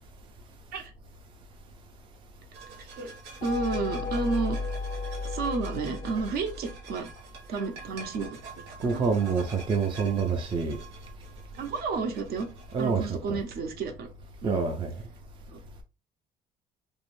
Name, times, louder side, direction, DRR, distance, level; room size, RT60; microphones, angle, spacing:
sound 1, 2.5-12.8, right 5 dB, 85° right, 1.0 m, -47 dB
voice 1, 2.8-3.1 3.4-4.6 5.2-7.1 7.5-8.4 8.7-9.0 11.5-12.5 12.8-14.1 14.4-14.7 15.5-15.6, right 4 dB, 65° right, 0.7 m, -31 dB
sound 2, 3.4-7.2, left 4 dB, 40° left, 0.4 m, -34 dB
voice 2, 8.8-10.8 12.7-13.4 14.4-14.9, right 5 dB, 30° right, 0.4 m, -27 dB
2.6 x 2.0 x 3.1 m
cardioid pair, 110°, 17 cm